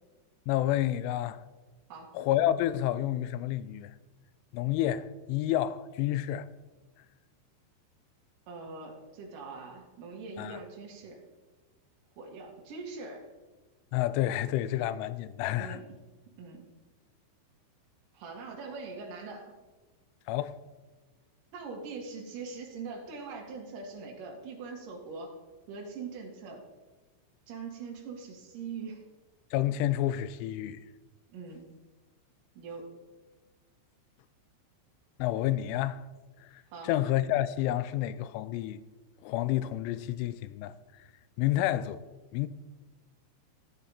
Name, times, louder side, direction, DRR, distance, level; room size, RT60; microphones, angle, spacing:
voice 1, 0.5-1.4 2.1-3.9 4.5-6.5 10.4-10.6 13.9-15.8 20.3-20.6 29.5-30.8 35.2-36.0 36.8-38.8 39.2-40.7 41.4-42.0 42.3-42.5, left 13 dB, 85° left, 3.0 m, -29 dB
voice 2, 8.5-11.2 12.2-13.3 15.6-16.0 16.4-16.6 18.1-19.5 21.5-25.3 25.7-26.6 27.5-29.0 31.3-31.7 32.5-33.0 36.7-36.9, right 4 dB, 55° right, 2.9 m, -42 dB
14.5 x 7.9 x 4.2 m
omnidirectional pair, 5.6 m